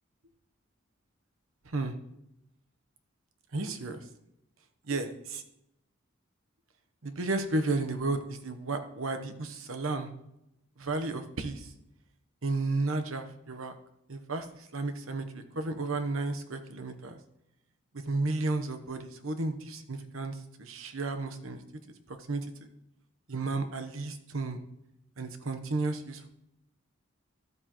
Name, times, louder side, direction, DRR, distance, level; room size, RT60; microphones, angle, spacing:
voice 1, 3.5-4.0 4.9-5.4 7.0-10.1 10.8-11.7 12.4-13.7 14.1-17.2 17.9-21.6 22.1-22.5 23.3-24.6 25.2-26.3, right 3 dB, 85° right, 8 dB, 1.0 m, -33 dB
12.5 x 8.5 x 3.1 m, 0.84 s
head